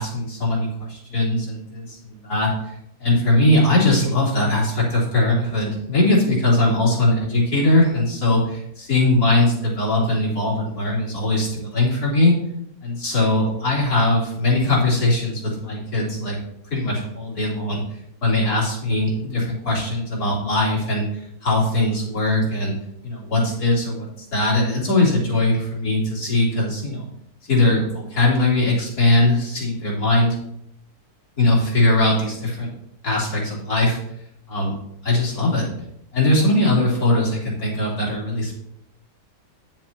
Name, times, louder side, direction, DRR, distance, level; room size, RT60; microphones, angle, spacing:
voice 1, 0.0-2.5 3.0-12.3 12.8-16.4 16.7-17.8 18.2-21.0 21.4-22.7 23.0-24.1 24.3-27.0 27.5-30.4 31.4-32.7 33.0-34.0 34.5-34.7 35.0-35.7 36.1-38.5, left 2 dB, 65° left, -6 dB, 3.6 m, -20 dB
10.0 x 7.4 x 2.8 m, 0.75 s
omnidirectional pair, 1.8 m